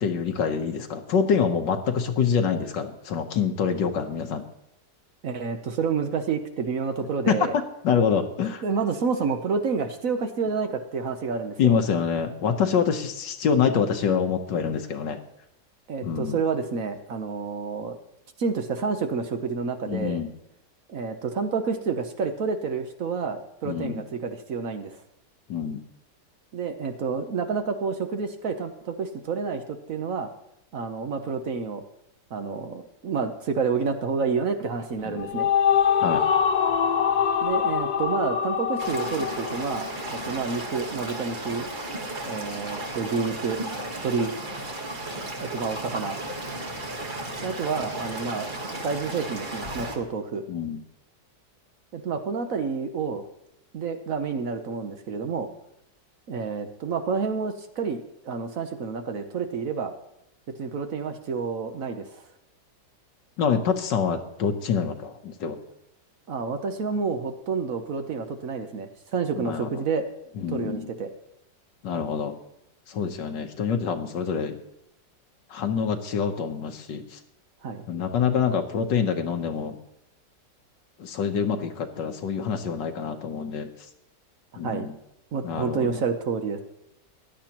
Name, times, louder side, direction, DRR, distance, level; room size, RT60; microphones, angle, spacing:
voice 1, 0.0-4.5 7.2-7.4 7.8-8.6 11.6-15.2 16.0-16.4 19.9-20.3 23.6-24.0 25.5-25.8 35.0-35.2 36.0-36.2 50.5-50.8 63.4-65.6 69.4-69.8 70.4-70.9 71.8-72.4 72.9-74.6 75.5-77.2 77.9-79.8 81.0-83.7 84.6-84.9 85.4-86.0, left 6 dB, 85° left, 5 dB, 1.6 m, -26 dB
voice 2, 5.2-7.6 8.6-11.8 15.9-18.0 18.4-20.2 20.9-25.0 26.5-30.3 30.7-31.8 32.3-35.5 37.4-41.7 42.2-43.6 44.0-44.3 45.4-46.2 47.4-50.4 51.9-53.2 53.7-55.5 56.3-58.0 58.2-59.9 60.6-62.2 66.3-70.0 70.5-71.1 77.6-77.8 84.6-84.9 85.3-86.6, right 5 dB, 55° right, 7 dB, 1.1 m, -29 dB
sound 1, 34.9-40.4, left 7 dB, 65° left, 1.3 m, -24 dB
sound 2, 38.8-50.0, right 1 dB, 30° right, 1.4 m, -34 dB
15.5 x 11.0 x 2.9 m, 0.84 s
omnidirectional pair, 1.9 m